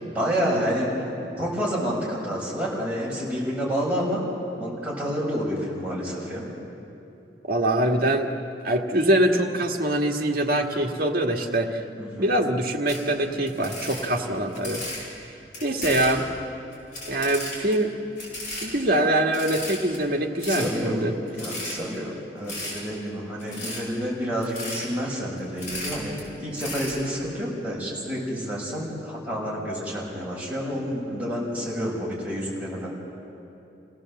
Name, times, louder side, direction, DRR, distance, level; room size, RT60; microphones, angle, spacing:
voice 1, 0.0-0.9 1.4-4.2 4.6-6.5 12.0-12.3 20.5-21.1 21.4-26.1 26.4-32.9, equal, 10° right, -6 dB, 6.3 m, -29 dB
voice 2, 7.5-8.3 8.6-11.8 12.2-14.8 15.6-16.2 17.1-17.9 18.6-21.1, right 1 dB, 55° right, 2 dB, 1.7 m, -23 dB
sound 1, 12.9-13.0 13.5-15.0 15.5-16.2 16.7-17.7 18.2-18.7 19.0-19.1 19.3-20.0 20.4-20.7 21.3-21.9 22.5-22.8 23.4-23.8 24.4-24.8 25.4-26.2 26.5-26.9, left 1 dB, 50° left, 7.9 m, -34 dB
27.5 x 17.0 x 7.7 m, 2.8 s
head